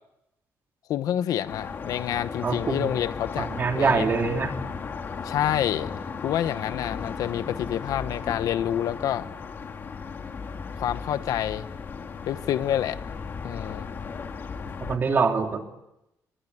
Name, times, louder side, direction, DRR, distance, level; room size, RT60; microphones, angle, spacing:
voice 1, 0.9-3.5 3.7-4.1 5.2-5.9 6.2-9.3 10.8-11.7 12.2-13.0 13.4-13.9, left 11 dB, 80° left, 13 dB, 1.1 m, -27 dB
sound 1, 1.5-15.0, left 5 dB, 35° left, 2.5 m, -36 dB
voice 2, 2.4-2.9 3.4-4.5 14.9-15.6, right 5 dB, 35° right, 4 dB, 3.0 m, -24 dB
27.0 x 23.0 x 9.4 m, 0.88 s
cardioid pair, 170°, 6 cm